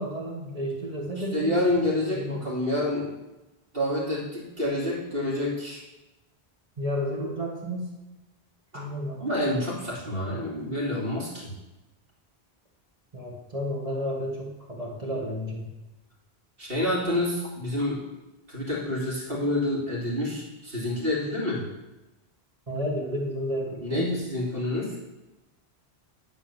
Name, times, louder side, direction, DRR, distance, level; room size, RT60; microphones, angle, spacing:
voice 1, 0.0-1.8 2.1-2.4 6.8-7.9 8.7-9.2 13.1-15.7 22.7-24.1, equal, 35° right, -3 dB, 1.9 m, -31 dB
voice 2, 1.3-3.1 3.7-5.8 8.7-8.8 9.2-11.5 16.6-18.0 18.5-21.6 23.8-25.0, left 1 dB, 65° right, -5 dB, 3.1 m, -28 dB
11.0 x 4.3 x 7.1 m, 1.0 s
omnidirectional pair, 1.1 m